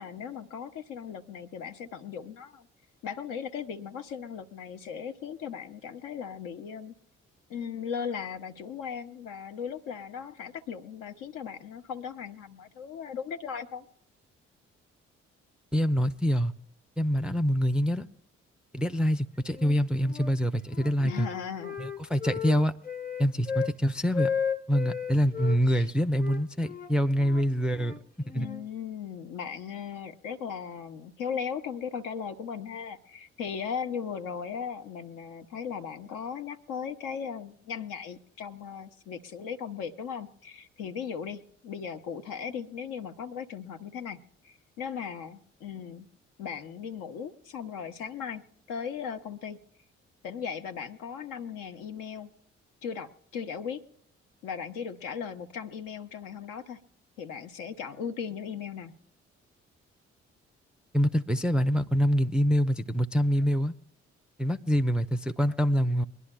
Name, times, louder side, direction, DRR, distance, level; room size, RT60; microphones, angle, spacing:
voice 1, 0.0-2.7 3.0-6.9 7.5-13.9 21.0-21.8 25.7-25.9 28.3-44.2 44.4-46.1 46.4-49.6 50.2-52.3 52.8-53.8 54.4-56.8 57.2-58.9, left 7 dB, 65° left, 8 dB, 0.9 m, -37 dB
voice 2, 15.7-16.5 17.0-18.1 18.7-21.3 21.8-22.7 23.2-24.3 24.7-27.9 28.3-28.5 60.9-63.7 64.4-66.0, equal, 5° right, 7 dB, 0.4 m, -25 dB
Wind instrument woodwind instrument, 19.5-20.3 20.7-23.8 24.1-25.6 26.2-28.7, left 7 dB, 25° left, 1.1 m, -34 dB
23.0 x 11.0 x 2.2 m, 0.67 s
figure-of-eight pair, 40°, 36 cm